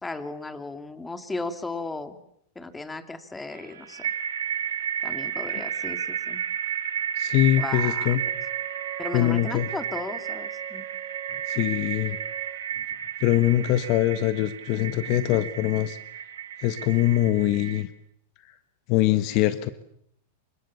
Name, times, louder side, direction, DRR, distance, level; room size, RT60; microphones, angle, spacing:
voice 1, 0.0-2.2 2.6-4.1 5.0-6.4 7.6-8.2 9.0-11.0, left 3 dB, 10° left, 9 dB, 2.5 m, -35 dB
sound 1, 3.5-17.8, right 9 dB, 85° right, 3.9 m, -32 dB
voice 2, 7.2-8.2 9.1-9.7 11.5-12.2 13.2-16.0 16.6-17.9 18.9-19.7, left 14 dB, 50° left, 12 dB, 1.5 m, -23 dB
Wind instrument woodwind instrument, 8.1-12.6, right 13 dB, 30° right, 5.9 m, -42 dB
28.5 x 25.0 x 7.2 m, 0.71 s
hypercardioid pair, 120°, 0 cm